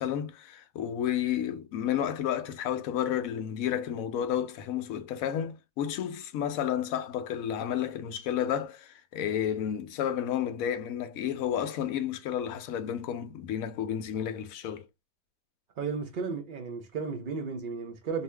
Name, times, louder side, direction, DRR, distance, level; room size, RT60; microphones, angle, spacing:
voice 1, 0.0-14.9, left 10 dB, 70° left, 0.9 m, -31 dB
voice 2, 15.8-18.2, right 5 dB, 75° right, 0.4 m, -34 dB
2.7 x 2.5 x 3.2 m
omnidirectional pair, 1.8 m